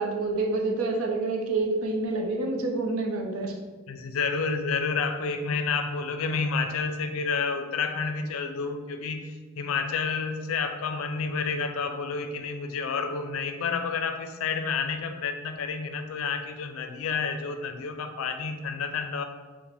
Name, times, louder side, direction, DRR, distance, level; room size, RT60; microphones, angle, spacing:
voice 1, 0.0-3.6, right 3 dB, 85° right, 2 dB, 0.6 m, -28 dB
voice 2, 3.9-19.2, left 5 dB, 75° left, 7 dB, 0.4 m, -30 dB
4.7 x 2.1 x 3.4 m, 1.4 s
head